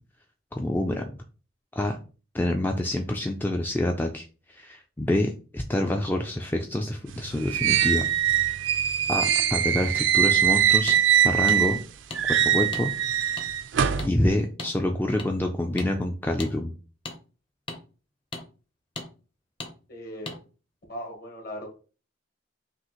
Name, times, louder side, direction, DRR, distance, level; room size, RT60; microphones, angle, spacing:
voice 1, 0.5-1.1 1.7-2.0 2.3-8.1 8.4-8.6 9.1-11.0 11.2-11.8 12.3-12.9 14.0-16.7, left 1 dB, 10° left, 3 dB, 0.3 m, -27 dB
sound 1, 7.1-11.8 12.1-14.1, right 10 dB, 75° right, 0.4 m, -22 dB
sound 2, 10.9-11.0 11.5-11.6 12.1-12.2 12.7-12.9 13.4-13.5 14.0-14.1 14.6-14.7 15.2-15.3 15.8-15.9 16.4-16.5 17.1-17.2 17.7-17.8 18.3-18.4 19.0-19.1 19.6-19.7 20.3-20.4, left 2 dB, 25° left, 0.7 m, -36 dB
voice 2, 19.9-20.3 20.9-21.7, equal, 50° left, 1 dB, 1.6 m, -38 dB
6.0 x 2.4 x 3.0 m, 0.36 s
head